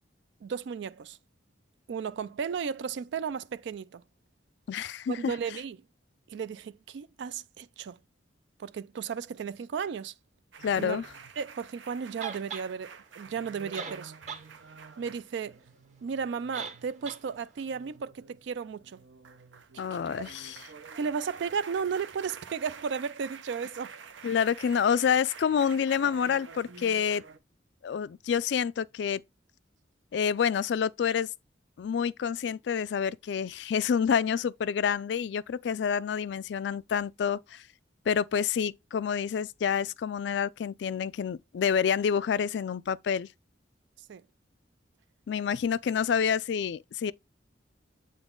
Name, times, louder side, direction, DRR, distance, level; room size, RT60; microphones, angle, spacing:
voice 1, 0.4-1.2 1.9-4.0 5.1-5.8 6.3-8.0 8.6-10.1 10.7-11.0 11.4-14.1 15.0-15.6 16.0-19.0 19.7-19.8 21.0-23.9 44.1-44.2, right 6 dB, 70° right, 0.3 m, -34 dB
voice 2, 4.7-5.3 10.6-11.0 19.8-20.6 24.2-27.2 27.8-29.2 30.1-31.3 31.8-37.6 38.1-43.3 45.3-47.1, left 7 dB, 65° left, 0.3 m, -28 dB
sound 1, 10.5-27.4, right 5 dB, 85° right, 0.7 m, -49 dB
sound 2, 12.2-12.7 13.5-13.6 13.7-14.5 14.8-14.9 16.5-16.8 17.1-17.2, right 5 dB, 40° right, 0.9 m, -38 dB
7.9 x 3.9 x 3.7 m
head